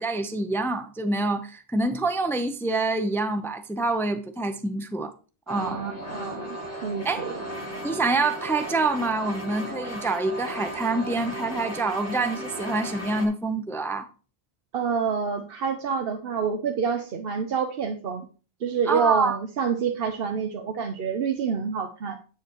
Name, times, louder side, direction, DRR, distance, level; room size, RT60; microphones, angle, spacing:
voice 1, 0.0-5.1 5.5-5.8 7.0-7.3 7.8-14.1 18.9-19.4, right 3 dB, 5° left, 0.4 m, -26 dB
sound 1, 5.5-13.3, equal, 80° left, 2.9 m, -35 dB
voice 2, 5.6-7.4 14.7-18.3 18.6-22.2, right 6 dB, 60° right, 0.9 m, -28 dB
9.6 x 7.6 x 3.0 m
omnidirectional pair, 1.1 m